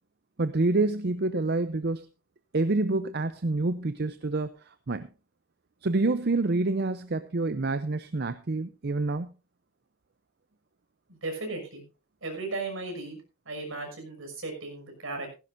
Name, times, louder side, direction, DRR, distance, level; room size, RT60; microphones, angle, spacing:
voice 1, 0.4-2.1 2.5-4.5 4.9-5.1 5.8-9.3, right 2 dB, 50° right, 12 dB, 0.6 m, -27 dB
voice 2, 11.1-11.8 12.2-13.2 13.5-15.3, right 3 dB, 70° right, 3 dB, 6.0 m, -36 dB
16.0 x 15.5 x 2.6 m, 0.29 s
head